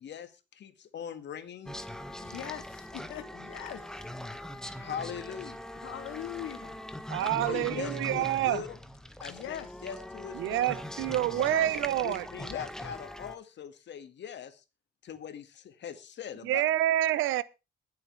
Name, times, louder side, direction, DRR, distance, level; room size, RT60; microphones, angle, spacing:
voice 1, 0.0-1.8 4.8-5.6 7.2-8.7 9.2-10.6 12.0-14.6 15.0-16.6, left 8 dB, 65° left, 2.0 m, -41 dB
sound 1, 1.7-13.4, left 1 dB, 5° left, 1.2 m, -41 dB
voice 2, 2.2-4.0 5.8-6.8 7.1-7.9 9.3-9.7 11.3-11.7 12.4-13.1, left 11 dB, 85° left, 2.0 m, -41 dB
voice 3, 7.1-8.6 10.3-12.3 16.4-17.4, right 13 dB, 85° right, 0.7 m, -27 dB
21.5 x 7.8 x 3.4 m
cardioid pair, 90°, 20 cm